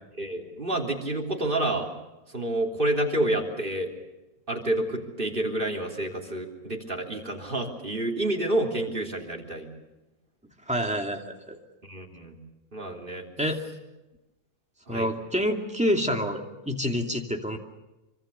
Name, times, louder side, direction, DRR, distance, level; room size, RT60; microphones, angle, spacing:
voice 1, 0.2-1.9 2.3-3.9 4.5-9.7 11.8-12.4 12.7-13.3 14.9-15.1, right 1 dB, 35° right, 1 dB, 3.5 m, -29 dB
voice 2, 10.7-11.6 13.4-13.6 14.9-17.6, equal, 5° right, 2 dB, 2.5 m, -27 dB
26.0 x 24.5 x 6.9 m, 1.0 s
omnidirectional pair, 1.5 m